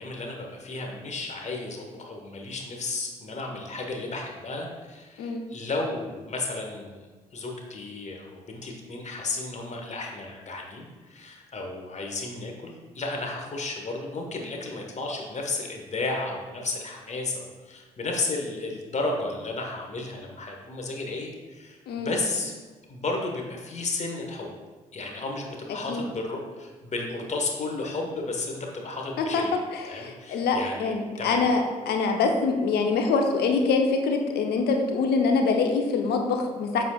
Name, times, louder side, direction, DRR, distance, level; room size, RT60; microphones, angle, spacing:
voice 1, 0.0-7.1 7.3-21.8 22.0-22.5 22.9-24.5 24.9-29.5 29.9-31.4, left 3 dB, 35° left, 1 dB, 1.4 m, -33 dB
voice 2, 29.2-36.8, left 4 dB, 60° left, 4 dB, 0.9 m, -25 dB
7.7 x 6.4 x 2.4 m, 1.3 s
figure-of-eight pair, 40°, 19 cm